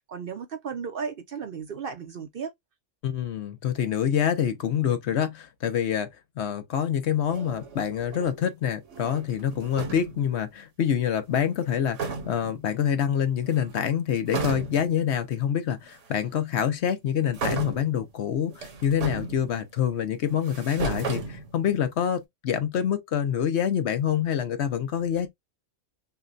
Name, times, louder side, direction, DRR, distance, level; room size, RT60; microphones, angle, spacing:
voice 1, 0.0-2.5, right 6 dB, 55° right, 0.7 m, -35 dB
voice 2, 3.0-6.1 6.4-25.3, left 9 dB, 65° left, 0.9 m, -26 dB
sound 1, 7.3-8.5 8.8-10.3 11.6-11.7 11.9-12.6 13.4-13.9 14.3-15.0 16.0-16.1 17.3-18.0 18.5-19.8 20.3-21.9, right 4 dB, 75° right, 1.3 m, -35 dB
5.8 x 2.2 x 2.5 m
omnidirectional pair, 1.3 m